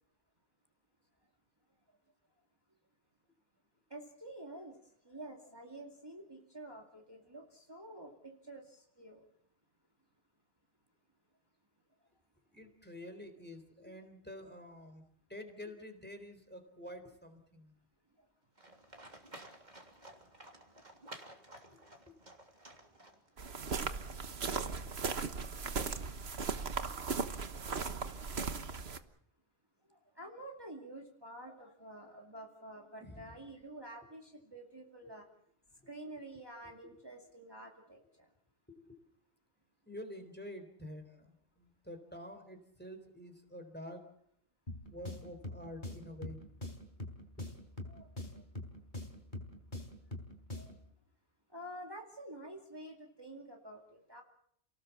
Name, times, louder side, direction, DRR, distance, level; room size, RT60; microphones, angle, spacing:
voice 1, 3.9-4.8 5.0-9.2 18.2-18.3 29.9-35.3 35.9-38.3 47.9-48.4 50.5-50.7 51.5-54.2, right 1 dB, 20° right, 1 dB, 2.5 m, -49 dB
voice 2, 12.5-15.0 15.3-17.7 21.7-21.8 33.0-33.4 36.2-36.3 36.8-36.9 38.7-39.0 39.9-44.0 44.9-46.4 47.4-47.5, left 1 dB, 10° left, 6 dB, 3.8 m, -48 dB
Livestock farm animals working animals, 18.6-23.5, right 1 dB, 40° right, 3.3 m, -54 dB
sound 1, 23.4-29.0, right 5 dB, 65° right, 1.5 m, -37 dB
sound 2, 44.7-50.9, left 1 dB, 45° left, 4.1 m, -45 dB
29.5 x 19.0 x 7.3 m, 0.71 s
omnidirectional pair, 1.1 m